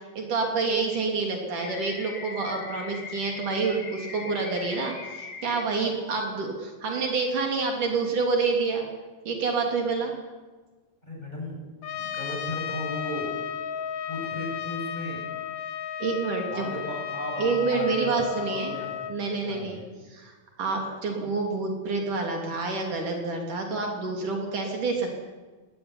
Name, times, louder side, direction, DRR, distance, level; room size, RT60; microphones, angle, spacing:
voice 1, 0.2-8.9 9.3-10.1 16.0-16.7 17.4-18.8 19.1-19.8 20.1-25.2, right 4 dB, 65° right, 1 dB, 4.5 m, -28 dB
sound 1, 1.6-5.6, left 4 dB, 40° left, 2.3 m, -40 dB
voice 2, 11.0-11.6 11.9-13.3 14.1-15.3 16.5-19.1 19.4-19.9, left 1 dB, 10° left, -2 dB, 8.0 m, -36 dB
Trumpet, 11.8-19.2, left 8 dB, 60° left, 1.7 m, -34 dB
19.5 x 19.0 x 9.8 m, 1.3 s
omnidirectional pair, 3.9 m